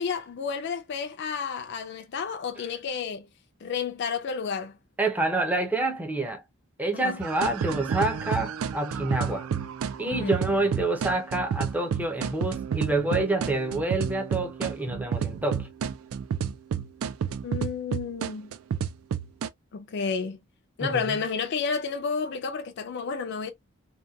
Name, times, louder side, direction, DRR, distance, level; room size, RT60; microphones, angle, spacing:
voice 1, 0.0-3.3 3.6-4.7 6.9-7.2 10.1-10.3 17.4-18.6 19.7-20.4 20.8-23.5, left 5 dB, 55° left, 0.4 m, -31 dB
voice 2, 5.0-6.4 6.8-9.5 10.0-15.7 20.8-21.2, right 2 dB, 10° right, 0.4 m, -27 dB
sound 1, 7.2-19.5, right 7 dB, 85° right, 0.3 m, -30 dB
2.7 x 2.2 x 2.2 m
head